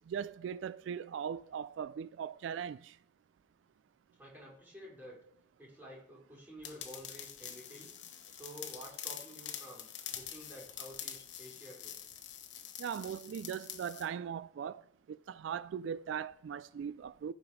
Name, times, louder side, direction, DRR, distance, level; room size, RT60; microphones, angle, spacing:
voice 1, 0.1-2.9 12.8-14.8 15.1-17.3, right 8 dB, 80° right, 0.3 m, -39 dB
voice 2, 4.2-5.2 5.6-7.9 8.3-11.9, equal, 10° right, 4.1 m, -51 dB
sound 1, 6.6-14.1, left 10 dB, 70° left, 1.1 m, -46 dB
15.0 x 5.3 x 4.7 m
head